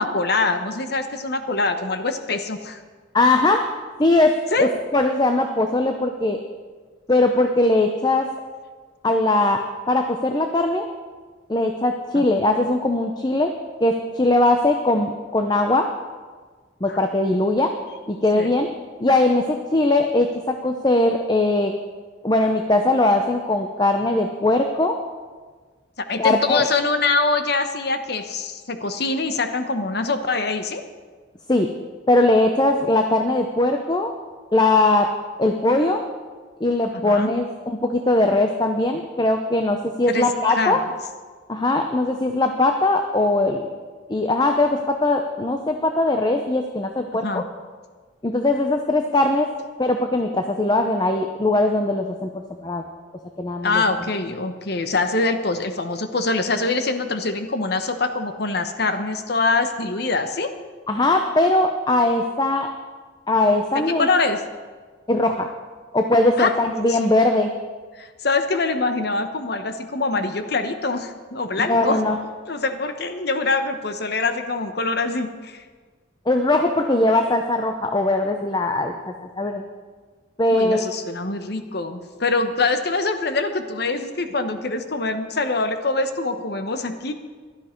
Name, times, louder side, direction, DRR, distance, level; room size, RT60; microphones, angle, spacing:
voice 1, 0.0-2.8 4.5-4.7 12.1-12.2 16.9-17.0 18.3-18.5 26.0-30.8 36.9-37.3 40.1-40.3 40.5-40.8 47.2-47.4 53.6-60.5 64.0-64.4 66.4-66.5 66.9-67.0 67.9-72.0 72.5-75.6 80.5-87.1, left 3 dB, 55° left, 8 dB, 1.0 m, -24 dB
voice 2, 3.1-3.7 4.0-6.4 7.1-8.3 9.0-10.9 11.5-13.5 13.8-15.9 16.8-17.7 18.1-18.7 19.0-21.7 22.2-25.0 26.2-26.7 31.5-31.7 32.1-34.1 34.5-35.1 35.4-36.0 36.6-40.8 41.5-43.7 44.1-47.4 48.2-49.5 49.8-52.9 53.4-53.8 60.9-62.7 63.3-64.1 65.1-65.5 65.9-67.5 71.6-72.2 76.3-79.6 80.4-80.8, left 2 dB, 20° left, 5 dB, 0.6 m, -20 dB
16.0 x 12.0 x 4.5 m, 1.5 s
head